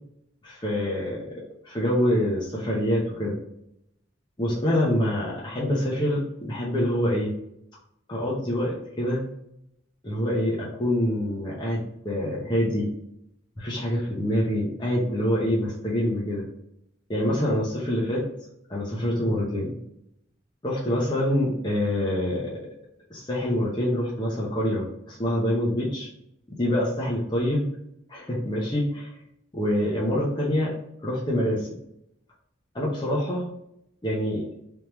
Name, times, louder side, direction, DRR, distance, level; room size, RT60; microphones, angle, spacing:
voice 1, 0.4-3.4 4.4-7.3 8.1-9.3 10.0-12.9 13.6-16.5 17.1-18.2 18.7-19.8 20.6-22.7 23.1-26.1 26.5-27.7 28.1-29.1 29.5-30.7 31.0-31.8 32.7-33.5 34.0-34.5, equal, 25° left, -5 dB, 0.8 m, -26 dB
3.5 x 3.0 x 3.0 m, 0.79 s
head